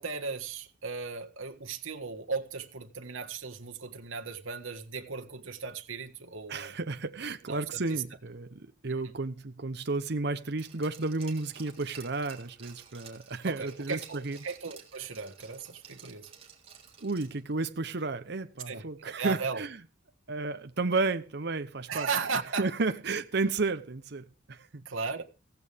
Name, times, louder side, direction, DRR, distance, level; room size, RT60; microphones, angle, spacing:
voice 1, 0.0-6.7 7.5-7.8 13.4-16.3 18.7-18.8 19.2-19.6 21.9-22.7 24.8-25.2, right 5 dB, 85° right, 1.6 m, -36 dB
voice 2, 6.5-14.4 17.0-19.8 20.3-22.1 22.6-24.8, right 3 dB, 55° right, 0.9 m, -32 dB
Glass, 10.6-17.5 17.8-17.9, right 7 dB, 30° right, 3.6 m, -52 dB
16.0 x 15.0 x 3.5 m
head